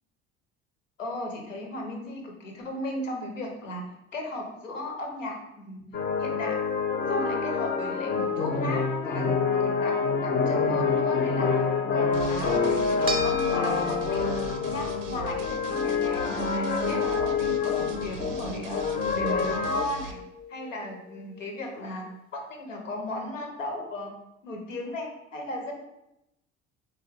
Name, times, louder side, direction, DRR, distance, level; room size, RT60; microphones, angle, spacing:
voice 1, 1.0-3.8 4.1-5.8 6.2-6.6 7.1-11.6 11.9-14.3 14.7-18.8 19.1-20.2 20.5-22.1 22.3-24.1 24.4-25.8, left 1 dB, 85° left, 2 dB, 0.6 m, -36 dB
sound 1, 5.9-19.9, left 5 dB, 25° left, 0.5 m, -27 dB
sound 2, 12.1-20.1, right 3 dB, 80° right, 0.5 m, -42 dB
sound 3, 13.1-21.7, left 5 dB, 15° right, 0.6 m, -36 dB
3.9 x 2.5 x 3.1 m, 0.86 s
figure-of-eight pair, 55°, 37 cm